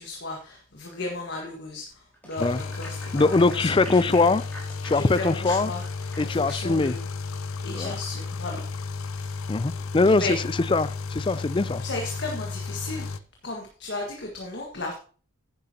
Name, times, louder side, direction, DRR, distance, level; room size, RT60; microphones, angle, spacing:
voice 1, 0.0-4.3 4.9-5.8 6.2-7.0 7.6-8.6 8.9-9.4 10.1-10.4 11.8-13.2 13.4-14.9, left 2 dB, 50° left, 1.7 m, -35 dB
Clapping / Applause, 2.1-7.0, equal, 5° left, 4.1 m, -45 dB
sound 1, 2.4-13.2, left 4 dB, 80° left, 0.6 m, -33 dB
voice 2, 3.1-4.4 4.8-5.7 6.2-6.9 7.7-7.9 9.5-10.4 10.7-11.8, left 3 dB, 25° left, 0.4 m, -22 dB
10.5 x 10.0 x 2.9 m
head